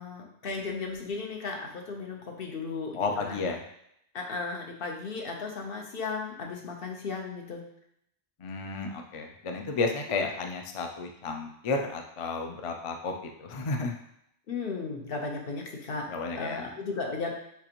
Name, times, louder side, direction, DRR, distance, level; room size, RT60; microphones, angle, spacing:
voice 1, 0.0-3.4 4.1-7.6 14.5-16.1 16.4-17.3, left 4 dB, 65° left, 1 dB, 1.0 m, -35 dB
voice 2, 2.9-3.6 8.4-14.0 16.1-16.6, left 3 dB, 45° left, 3 dB, 0.4 m, -32 dB
6.8 x 2.5 x 2.9 m, 0.75 s
omnidirectional pair, 1.0 m